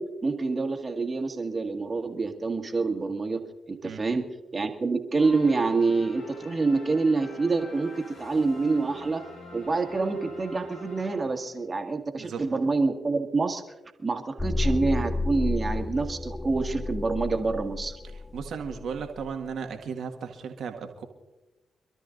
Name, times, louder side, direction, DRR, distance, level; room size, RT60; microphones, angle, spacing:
voice 1, 0.0-3.4 3.7-4.2 4.5-9.2 9.5-13.6 14.0-18.0, right 3 dB, 35° right, 5 dB, 1.9 m, -27 dB
sound 1, 5.2-11.7, left 2 dB, 65° left, 3.4 m, -46 dB
sound 2, 14.4-19.3, left 2 dB, 20° left, 0.3 m, -31 dB
voice 2, 18.3-21.1, right 6 dB, 65° right, 4 dB, 1.7 m, -35 dB
27.0 x 13.0 x 2.6 m, 1.1 s
hypercardioid pair, 40°, 0 cm